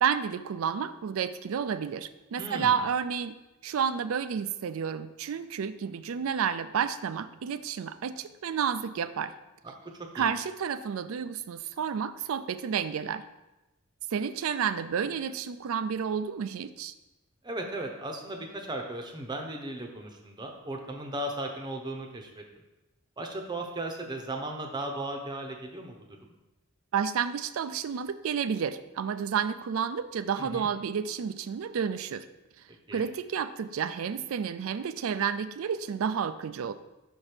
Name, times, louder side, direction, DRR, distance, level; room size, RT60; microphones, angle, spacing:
voice 1, 0.0-3.4 3.6-9.3 10.1-13.3 14.1-16.9 26.9-32.3 32.9-36.7, right 7 dB, 75° right, 13 dB, 0.4 m, -30 dB
voice 2, 2.4-2.8 10.2-10.3 17.4-22.4 23.2-26.3 30.4-30.7 32.9-33.0, right 1 dB, 20° right, 2 dB, 0.7 m, -36 dB
6.1 x 4.5 x 4.9 m, 1.0 s
head